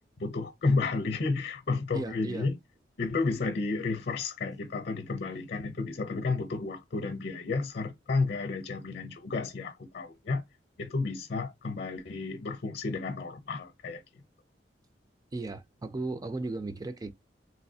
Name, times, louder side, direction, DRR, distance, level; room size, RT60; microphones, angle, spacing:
voice 1, 0.2-2.6 3.0-10.4 10.8-14.0, left 3 dB, 60° left, 0.6 m, -32 dB
voice 2, 1.9-2.5 15.3-17.1, right 2 dB, 20° right, 0.4 m, -35 dB
3.2 x 2.6 x 2.6 m
head